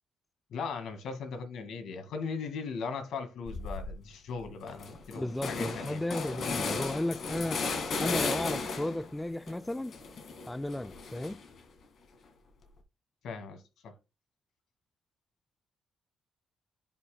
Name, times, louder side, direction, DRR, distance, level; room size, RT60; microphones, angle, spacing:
voice 1, 0.5-6.0 13.2-13.9, left 5 dB, 75° left, 2.0 m, -38 dB
sound 1, 3.5-3.9 4.3-4.4 4.7-9.1 9.5-11.6, left 4 dB, 55° left, 2.1 m, -35 dB
voice 2, 5.2-7.6 8.0-9.9 10.5-11.4, left 1 dB, 10° left, 0.4 m, -34 dB
10.5 x 5.6 x 2.3 m
cardioid pair, 90°, 0 cm